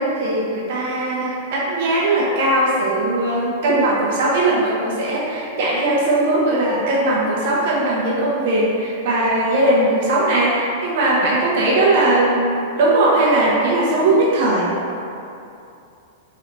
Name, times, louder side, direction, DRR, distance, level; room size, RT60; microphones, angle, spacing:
voice 1, 0.0-14.7, right 2 dB, 60° right, -5 dB, 0.8 m, -19 dB
3.8 x 3.2 x 3.0 m, 2.7 s
supercardioid pair, 145°, 0 cm